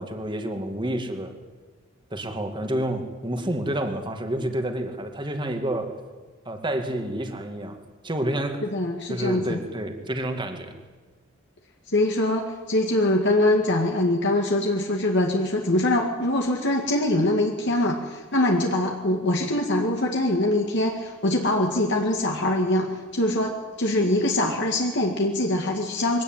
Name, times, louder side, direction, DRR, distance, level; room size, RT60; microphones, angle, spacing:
voice 1, 0.0-1.3 2.1-6.0 6.5-8.6 9.1-10.7, right 1 dB, 20° right, 5 dB, 2.2 m, -29 dB
voice 2, 8.7-9.6 11.9-26.2, left 1 dB, 55° left, 1 dB, 2.1 m, -23 dB
22.5 x 17.0 x 9.1 m, 1.3 s
head